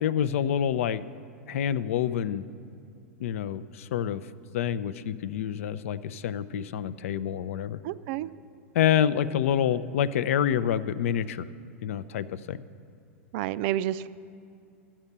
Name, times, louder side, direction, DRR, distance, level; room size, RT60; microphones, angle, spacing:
voice 1, 0.0-1.0 1.5-2.5 3.2-4.2 4.5-7.8 8.7-11.5 11.8-12.6, left 9 dB, 65° left, 16 dB, 0.4 m, -27 dB
voice 2, 7.8-8.3 13.3-14.1, right 13 dB, 55° right, 16 dB, 0.4 m, -29 dB
13.0 x 7.4 x 6.7 m, 2.6 s
hypercardioid pair, 100°, 8 cm